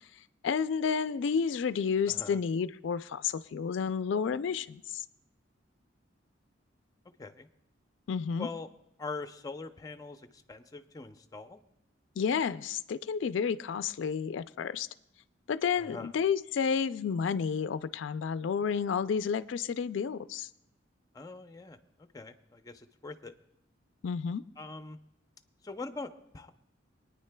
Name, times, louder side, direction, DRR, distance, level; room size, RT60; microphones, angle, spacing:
voice 1, 0.4-5.0 8.1-8.5 12.2-14.9 15.5-20.5 24.0-24.4, left 6 dB, 80° left, 13 dB, 0.4 m, -31 dB
voice 2, 2.1-2.4 7.2-7.5 8.4-8.7 9.0-11.6 15.8-16.1 21.1-23.3 24.6-25.0 25.6-26.5, left 3 dB, 20° left, 8 dB, 0.5 m, -43 dB
24.0 x 9.5 x 2.2 m, 0.80 s
head